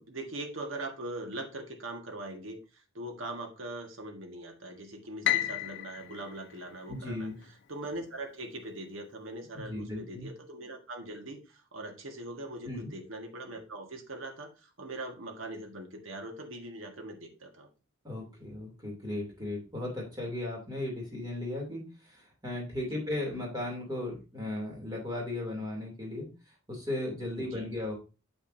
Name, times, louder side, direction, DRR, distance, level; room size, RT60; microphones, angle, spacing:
voice 1, 0.0-7.3 7.7-17.7 22.9-23.0 27.5-27.7, right 1 dB, 75° right, 4 dB, 1.5 m, -41 dB
Piano, 5.2-7.5, left 12 dB, 60° left, 0.6 m, -33 dB
voice 2, 6.9-7.4 9.5-10.3 12.6-12.9 18.0-26.3 26.7-27.9, left 1 dB, 20° right, -1 dB, 2.8 m, -36 dB
8.8 x 6.9 x 2.7 m, 0.31 s
head